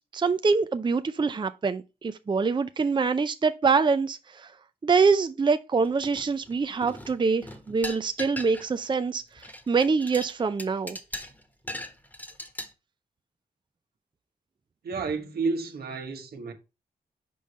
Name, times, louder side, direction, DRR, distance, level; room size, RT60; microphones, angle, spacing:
voice 1, 0.1-4.5 4.8-11.0, right 4 dB, 30° right, 0.5 m, -25 dB
sound 1, 6.0-6.5 6.8-8.9 9.2-12.7, left 1 dB, 10° left, 1.3 m, -38 dB
voice 2, 14.8-16.5, right 4 dB, 85° right, 1.3 m, -31 dB
5.4 x 5.1 x 4.2 m
cardioid pair, 75°, 16 cm